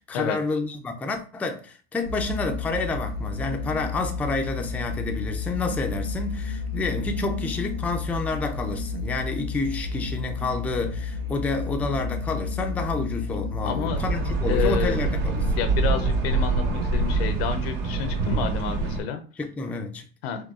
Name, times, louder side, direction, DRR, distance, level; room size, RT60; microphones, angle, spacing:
voice 1, 0.0-15.4 19.4-20.1, left 3 dB, 5° left, 0.3 m, -29 dB
sound 1, 2.0-18.2, left 4 dB, 55° right, 1.8 m, -32 dB
voice 2, 13.6-14.0 14.5-14.9 15.5-19.2 20.2-20.5, left 8 dB, 80° left, 0.7 m, -29 dB
sound 2, 13.8-19.0, right 3 dB, 75° right, 1.2 m, -25 dB
4.5 x 2.3 x 2.4 m
supercardioid pair, 110°, 30 cm